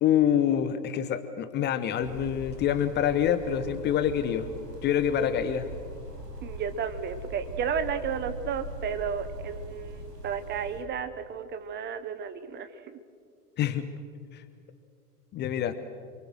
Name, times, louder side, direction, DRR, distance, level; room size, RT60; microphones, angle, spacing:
voice 1, 0.0-4.5 4.8-5.7 13.6-13.9 14.3-14.4 15.3-15.8, left 9 dB, 20° left, 12 dB, 1.0 m, -26 dB
sound 1, 2.0-10.8, equal, 80° right, 4.5 m, -41 dB
voice 2, 6.4-13.0, right 7 dB, 20° right, 10 dB, 1.2 m, -33 dB
28.5 x 23.5 x 6.4 m, 2.1 s
figure-of-eight pair, 100°, 47 cm